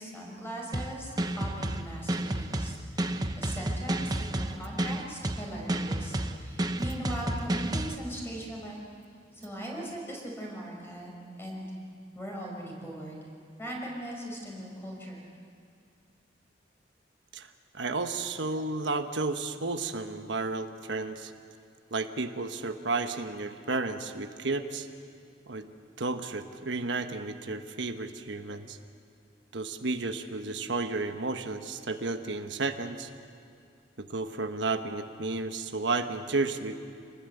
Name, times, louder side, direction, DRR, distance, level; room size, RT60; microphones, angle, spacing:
voice 1, 0.0-8.8 9.3-11.7 12.1-13.3 13.6-15.2, equal, 15° left, -1 dB, 5.5 m, -40 dB
sound 1, 0.7-7.9, right 1 dB, 20° right, 0.8 m, -31 dB
voice 2, 17.3-21.3 21.9-24.9 25.5-25.7 26.0-28.8 29.5-33.1 34.0-36.8, right 3 dB, 85° right, 7 dB, 1.2 m, -32 dB
27.5 x 20.0 x 8.0 m, 2.4 s
head